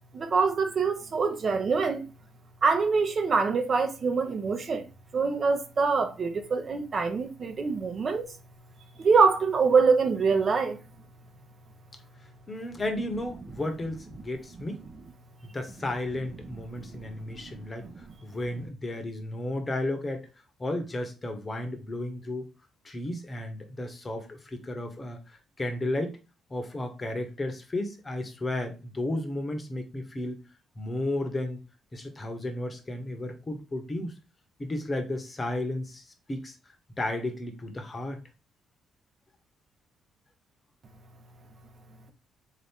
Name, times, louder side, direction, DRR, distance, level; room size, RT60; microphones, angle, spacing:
voice 1, 0.1-2.0 2.6-4.9 5.1-8.3 9.0-10.8 16.7-17.9, right 4 dB, 45° right, 0.7 m, -25 dB
voice 2, 12.5-14.8 15.4-20.3 20.6-22.5 22.8-25.2 25.6-26.2 26.5-30.4 30.8-31.6 31.9-34.1 34.6-36.0 36.3-36.5 37.0-38.2, left 1 dB, 25° left, 0.9 m, -33 dB
3.7 x 2.8 x 3.5 m
cardioid pair, 90°, 0 cm